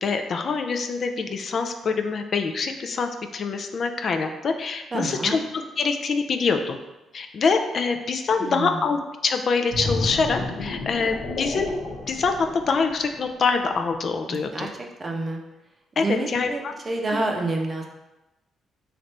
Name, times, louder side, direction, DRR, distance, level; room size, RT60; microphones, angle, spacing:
voice 1, 0.0-6.8 7.1-11.7 12.1-14.7 16.0-16.7, left 4 dB, 50° left, 6 dB, 0.3 m, -25 dB
voice 2, 4.9-5.4 8.4-8.8 14.3-14.7 15.0-15.4 16.0-17.9, right 2 dB, 30° right, 1 dB, 0.6 m, -28 dB
sound 1, 9.7-13.3 13.7-13.9, left 2 dB, 70° left, 0.8 m, -31 dB
3.3 x 2.5 x 4.1 m, 0.99 s
cardioid pair, 90°, 0 cm